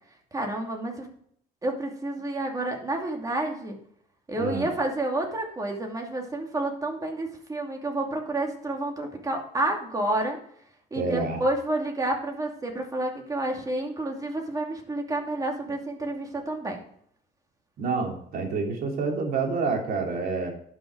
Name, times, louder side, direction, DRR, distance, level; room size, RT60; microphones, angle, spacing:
voice 1, 0.3-1.1 1.6-3.8 4.3-10.4 10.9-16.8, right 2 dB, 20° right, 2 dB, 2.6 m, -29 dB
voice 2, 4.3-4.7 10.9-11.4 17.8-20.5, right 4 dB, 60° right, 1 dB, 3.3 m, -28 dB
11.5 x 6.4 x 4.7 m, 0.64 s
cardioid pair, 110°, 17 cm